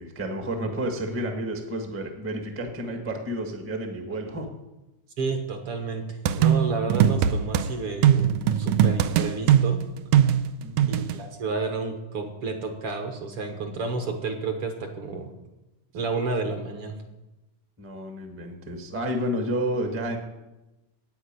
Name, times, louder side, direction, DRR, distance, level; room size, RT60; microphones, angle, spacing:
voice 1, 0.0-4.5 10.6-11.0 17.8-20.2, right 1 dB, 10° right, 3 dB, 0.7 m, -31 dB
voice 2, 5.2-9.8 10.9-15.3 15.9-17.0, right 3 dB, 55° right, 5 dB, 1.9 m, -31 dB
sound 1, 6.3-7.7 8.0-11.2, right 9 dB, 80° right, 1.9 m, -20 dB
9.8 x 8.8 x 8.8 m, 1.0 s
omnidirectional pair, 3.4 m